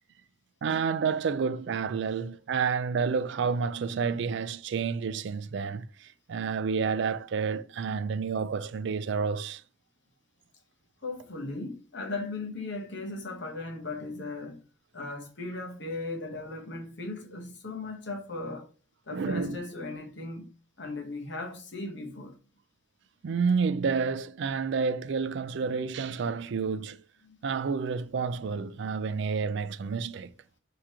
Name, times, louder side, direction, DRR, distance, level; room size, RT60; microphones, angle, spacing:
voice 1, 0.6-9.6 19.1-19.6 23.2-27.0 27.4-30.3, right 5 dB, 60° right, 0.4 m, -29 dB
voice 2, 11.0-14.6 14.9-18.7 19.1-20.5 20.8-22.3 27.2-27.4, left 2 dB, 60° left, 1.1 m, -37 dB
3.7 x 2.9 x 4.6 m
head